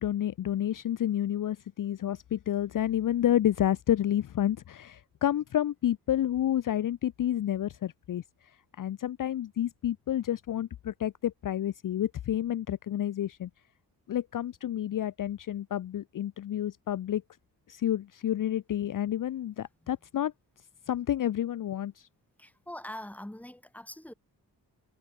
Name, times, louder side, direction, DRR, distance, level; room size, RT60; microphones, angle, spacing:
voice 1, 0.0-8.2 8.8-13.5 14.1-17.2 17.7-20.3 20.9-22.1, left 11 dB, 55° left, 0.6 m, -29 dB
voice 2, 22.4-24.1, left 1 dB, 5° left, 1.9 m, -43 dB
wide cardioid pair, 170°, 39 cm